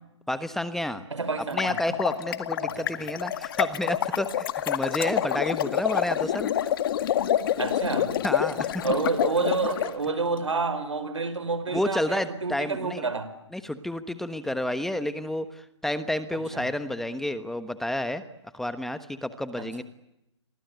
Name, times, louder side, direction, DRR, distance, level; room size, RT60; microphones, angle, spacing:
voice 1, 0.3-1.0 1.5-6.5 8.2-8.7 11.7-13.0 13.5-18.2 18.5-19.8, left 1 dB, ahead, 12 dB, 1.2 m, -30 dB
voice 2, 1.1-2.0 2.8-2.9 7.6-8.3 8.8-13.3 16.5-16.6 19.6-19.8, right 4 dB, 85° right, 12 dB, 5.4 m, -29 dB
sound 1, 1.4-9.9, left 11 dB, 50° left, 1.9 m, -27 dB
30.0 x 23.5 x 8.1 m, 0.88 s
hypercardioid pair, 140°, 15 cm